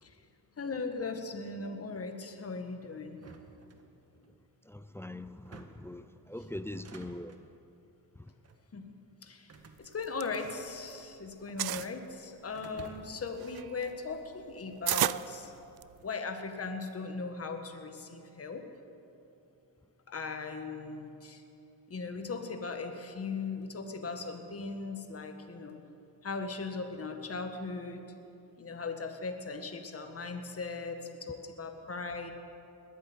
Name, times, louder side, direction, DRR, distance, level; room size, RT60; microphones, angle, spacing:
voice 1, 0.6-3.2 8.7-9.5 9.8-15.5 16.0-18.6 20.1-21.4 21.9-25.8 26.2-28.0 28.6-32.3, left 4 dB, 35° left, 1.7 m, -38 dB
sound 1, 3.1-4.3 5.3-6.0 6.6-7.5 8.3-8.7 9.5-11.0 11.3-12.0 12.5-13.3, right 4 dB, 35° right, 1.6 m, -53 dB
voice 2, 4.7-7.4 8.2-8.3, left 1 dB, 5° left, 0.4 m, -42 dB
sound 2, 9.8-11.0 11.3-11.9 12.5-16.1, right 14 dB, 65° right, 0.5 m, -34 dB
21.0 x 8.5 x 8.1 m
cardioid pair, 85°, 40 cm